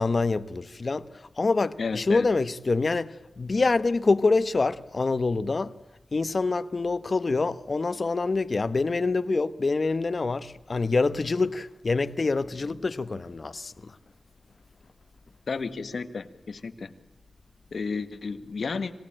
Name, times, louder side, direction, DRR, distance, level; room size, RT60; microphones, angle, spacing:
voice 1, 0.0-5.8 6.1-14.0, left 3 dB, 50° left, 1.0 m, -26 dB
voice 2, 1.8-2.3 15.5-16.9 17.7-18.9, left 4 dB, 75° left, 1.6 m, -32 dB
26.5 x 18.0 x 8.9 m
wide cardioid pair, 70°, 0 cm